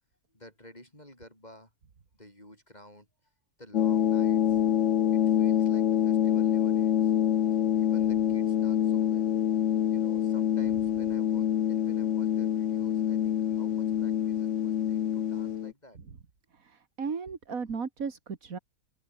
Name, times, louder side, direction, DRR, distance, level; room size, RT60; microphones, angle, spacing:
voice 1, 0.3-1.7 2.1-3.1 3.6-4.6 5.1-7.1 7.7-9.3 9.9-16.0, left 1 dB, 25° left, 6.3 m, -52 dB
sound 1, 3.7-15.7, left 10 dB, 60° left, 1.1 m, -26 dB
voice 2, 16.5-18.6, right 5 dB, 65° right, 2.4 m, -36 dB
open air
omnidirectional pair, 1.6 m